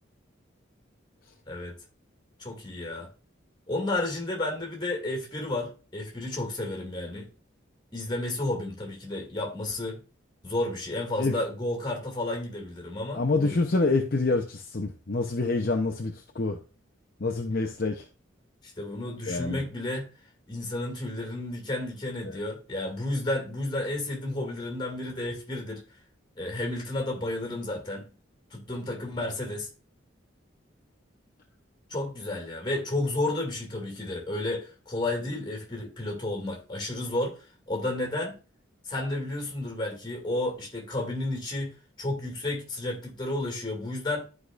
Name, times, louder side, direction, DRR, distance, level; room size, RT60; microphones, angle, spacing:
voice 1, 2.4-3.1 3.7-7.3 7.9-10.0 10.4-13.6 18.8-20.1 20.5-25.8 26.4-28.1 28.5-29.7 31.9-37.4 37.7-38.4 38.9-44.2, left 2 dB, 25° left, 2.2 m, -32 dB
voice 2, 13.1-16.6 17.2-18.1 19.3-19.6 22.2-22.4, left 3 dB, 50° left, 0.7 m, -27 dB
12.0 x 4.8 x 2.4 m
head